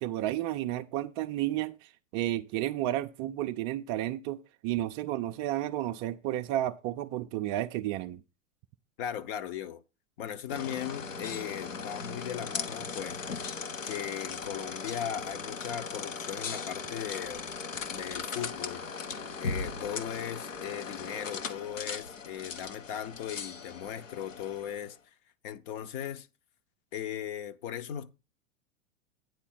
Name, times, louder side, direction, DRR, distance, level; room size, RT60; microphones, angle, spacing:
voice 1, 0.0-8.2, right 13 dB, 30° right, 0.5 m, -32 dB
voice 2, 9.0-9.8 10.2-13.5 13.8-17.6 17.9-18.8 19.4-25.1 25.4-26.3 26.9-28.1, left 10 dB, 45° left, 0.9 m, -38 dB
sound 1, 10.5-24.9, left 5 dB, 80° left, 1.2 m, -38 dB
9.5 x 4.1 x 7.4 m
figure-of-eight pair, 95°, 38 cm